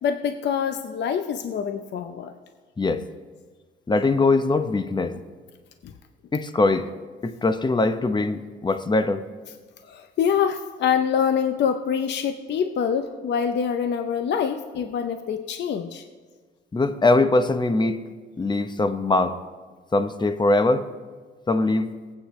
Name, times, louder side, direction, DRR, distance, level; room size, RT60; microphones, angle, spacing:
voice 1, 0.0-2.3 5.8-5.9 9.9-16.0, left 7 dB, 60° left, 7 dB, 0.7 m, -25 dB
voice 2, 3.9-5.2 6.3-6.9 7.2-9.3 16.7-18.0 18.4-19.4 19.9-20.9 21.5-21.9, left 2 dB, 20° left, 10 dB, 0.8 m, -22 dB
18.5 x 8.6 x 3.1 m, 1.5 s
cardioid pair, 90°, 20 cm